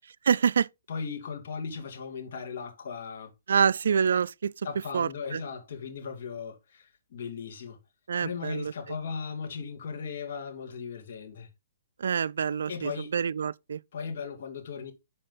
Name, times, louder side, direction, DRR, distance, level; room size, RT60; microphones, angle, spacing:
voice 1, 0.2-0.7 3.5-4.5 4.9-5.4 8.1-8.7 12.0-13.8, right 7 dB, 75° right, 0.3 m, -26 dB
voice 2, 0.9-3.3 4.6-7.8 8.2-11.5 12.7-13.1 13.9-14.9, left 5 dB, 60° left, 2.6 m, -37 dB
11.0 x 4.2 x 3.9 m
hypercardioid pair, 140°, 0 cm